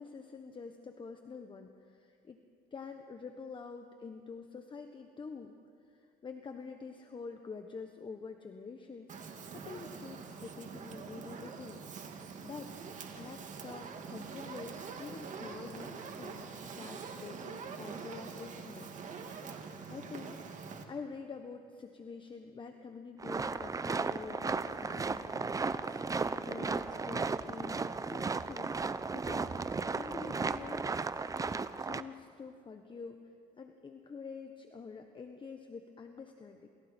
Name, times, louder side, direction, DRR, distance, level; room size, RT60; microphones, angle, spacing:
voice 1, 0.0-2.4 2.7-5.5 5.9-9.1 9.5-11.8 12.4-12.8 13.2-18.9 19.9-20.6 20.9-27.8 28.1-28.8 29.1-30.9 31.8-33.3 33.6-36.7, left 5 dB, 30° left, 6 dB, 1.3 m, -47 dB
Fire, 9.1-20.8, right 5 dB, 45° right, 2.4 m, -45 dB
sound 1, 23.2-32.0, right 4 dB, 20° right, 0.6 m, -35 dB
28.5 x 27.5 x 4.5 m, 2.4 s
cardioid pair, 110°, 17 cm